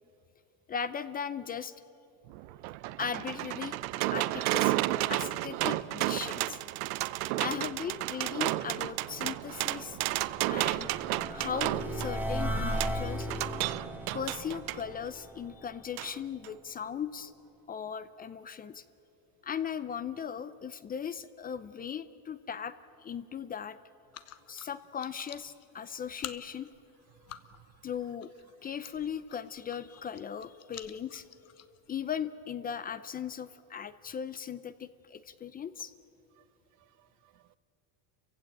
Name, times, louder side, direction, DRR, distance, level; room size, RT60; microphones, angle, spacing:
voice 1, 0.7-1.7 3.0-4.8 5.1-6.6 7.4-10.0 10.5-10.9 11.3-13.3 14.1-17.3 17.7-18.8 19.4-22.7 23.0-23.8 24.5-26.7 27.8-28.3 28.6-31.2 31.9-35.9, left 7 dB, 20° left, 0.5 m, -38 dB
sound 1, 2.3-14.8 16.0-16.1 16.4-16.5, right 17 dB, 85° right, 0.8 m, -32 dB
sound 2, 9.1-16.2, equal, 5° right, 1.5 m, -37 dB
sound 3, 24.1-32.1, left 11 dB, 35° left, 0.9 m, -50 dB
voice 2, 27.3-27.7 36.4-36.5 36.8-37.6, right 15 dB, 45° right, 0.6 m, -63 dB
30.0 x 16.0 x 8.9 m
cardioid pair, 145°, 42 cm